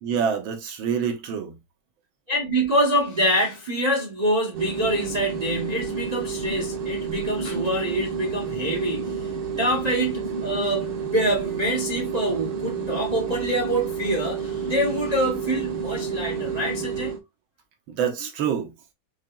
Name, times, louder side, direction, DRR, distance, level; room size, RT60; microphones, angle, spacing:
voice 1, 0.0-1.6 17.9-18.7, right 7 dB, 80° right, 1.8 m, -26 dB
voice 2, 2.3-9.3 9.6-17.1, right 1 dB, 45° right, 0.5 m, -25 dB
sound 1, 4.5-17.2, right 5 dB, 65° right, 1.7 m, -30 dB
5.4 x 2.8 x 2.2 m
omnidirectional pair, 2.2 m